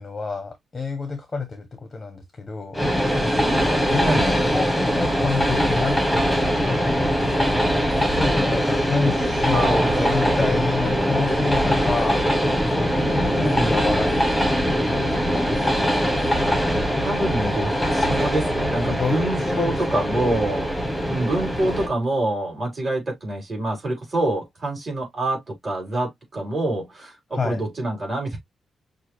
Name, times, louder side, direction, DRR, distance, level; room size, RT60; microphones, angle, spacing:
voice 1, 0.0-2.8 3.6-7.6 8.1-15.5 18.9-19.2 19.5-20.1 27.3-27.6, left 4 dB, 20° left, 0.8 m, -29 dB
Train, 2.7-21.9, equal, 5° left, 1.4 m, -22 dB
voice 2, 9.5-10.7 13.4-13.7 17.0-20.7 21.1-28.4, right 2 dB, 25° right, 3.3 m, -26 dB
6.1 x 2.5 x 3.0 m
wide cardioid pair, 180°, 0 cm